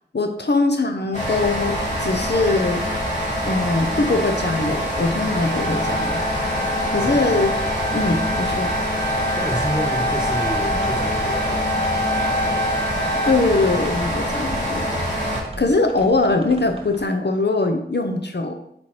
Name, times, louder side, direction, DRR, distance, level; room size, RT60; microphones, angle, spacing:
voice 1, 0.1-2.8 3.4-6.2 6.9-7.5 7.9-8.7 13.3-14.9 15.6-18.5, left 3 dB, 65° left, 5 dB, 0.7 m, -21 dB
sound 1, 1.1-15.4, equal, 40° left, 2.3 m, -25 dB
sound 2, 5.4-13.3, equal, 65° right, 0.7 m, -27 dB
voice 2, 9.4-11.6 12.2-12.9 14.4-15.3, equal, 5° right, 0 dB, 1.4 m, -31 dB
sound 3, 10.3-17.0, right 1 dB, 30° right, 0.9 m, -39 dB
8.3 x 4.4 x 3.2 m, 0.74 s
wide cardioid pair, 45°, 19 cm